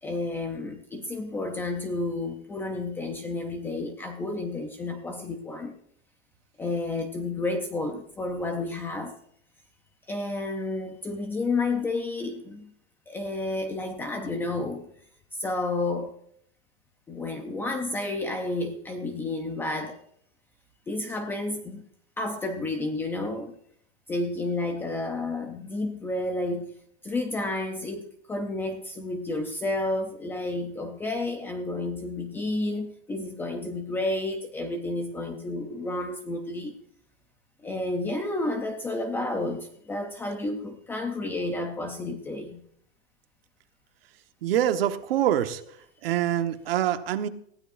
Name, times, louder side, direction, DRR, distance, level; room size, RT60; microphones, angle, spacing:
voice 1, 0.0-5.8 6.6-9.2 10.1-12.7 13.1-14.9 15.4-16.1 17.1-20.0 20.9-21.8 22.2-23.5 24.1-26.7 27.0-36.8 37.6-42.6, left 2 dB, 5° left, 5 dB, 0.5 m, -31 dB
voice 2, 44.4-45.6 46.0-47.3, right 11 dB, 60° right, 8 dB, 1.3 m, -25 dB
19.5 x 15.5 x 2.5 m, 0.69 s
supercardioid pair, 165°, 32 cm